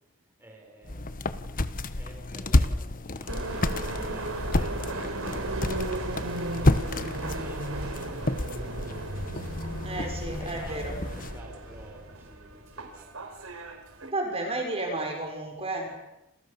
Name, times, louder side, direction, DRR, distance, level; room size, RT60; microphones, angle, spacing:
voice 1, 0.4-1.4 1.9-8.7 10.4-10.9 11.2-13.6, right 1 dB, 10° right, 1 dB, 6.4 m, -51 dB
sound 1, 0.8-11.4, left 1 dB, 40° left, 1.3 m, -30 dB
sound 2, 3.3-14.1, right 2 dB, 80° right, 5.0 m, -36 dB
voice 2, 9.8-11.0 14.0-16.0, right 2 dB, 30° right, 2 dB, 6.3 m, -32 dB
29.0 x 28.5 x 7.1 m, 0.87 s
head